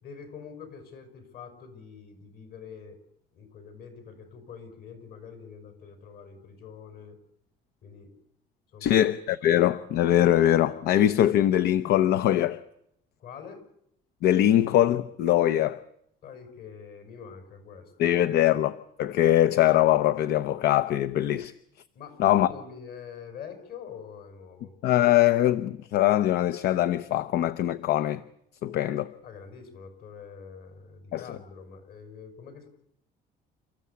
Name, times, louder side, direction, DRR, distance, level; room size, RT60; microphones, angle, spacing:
voice 1, 0.0-3.0 3.3-7.2 7.8-8.1 8.7-9.1 9.4-9.7 13.2-13.6 16.2-18.3 21.9-24.7 29.2-32.7, left 6 dB, 65° left, 6.0 m, -45 dB
voice 2, 8.8-12.6 14.2-15.8 18.0-21.5 22.2-22.5 24.8-28.2 28.6-29.1 31.1-31.4, left 12 dB, 80° left, 0.8 m, -22 dB
29.5 x 14.0 x 8.5 m
cardioid pair, 110°, 17 cm